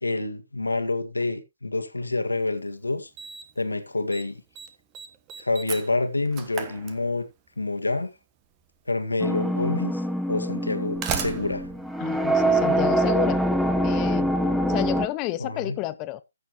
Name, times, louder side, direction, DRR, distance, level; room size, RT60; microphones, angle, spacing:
voice 1, 0.0-3.1 3.6-4.4 5.4-7.2 7.6-8.1 8.9-10.0 10.3-11.7 15.4-15.8, left 2 dB, 85° left, 1.9 m, -27 dB
Slam, 2.4-2.5 3.2-3.6 3.9-4.3 4.6-7.5 8.6-8.7 9.6-9.7 10.6-13.0, right 7 dB, 20° right, 1.4 m, -35 dB
sound 1, 9.2-15.1, right 1 dB, ahead, 0.9 m, -24 dB
voice 2, 12.0-13.4 13.8-14.3 14.7-16.2, left 16 dB, 20° left, 0.6 m, -30 dB
15.0 x 6.7 x 3.1 m
figure-of-eight pair, 140°, 0 cm